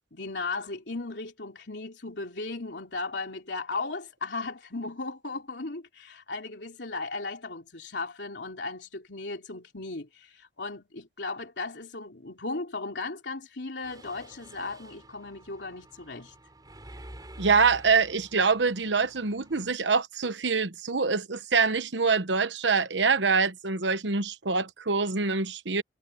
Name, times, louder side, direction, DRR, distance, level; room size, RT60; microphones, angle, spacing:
voice 1, 0.1-16.3, left 3 dB, 70° left, 3.4 m, -36 dB
Mechanisms, 13.8-19.7, right 1 dB, 20° right, 4.5 m, -49 dB
voice 2, 17.4-25.8, right 4 dB, 80° right, 1.1 m, -25 dB
head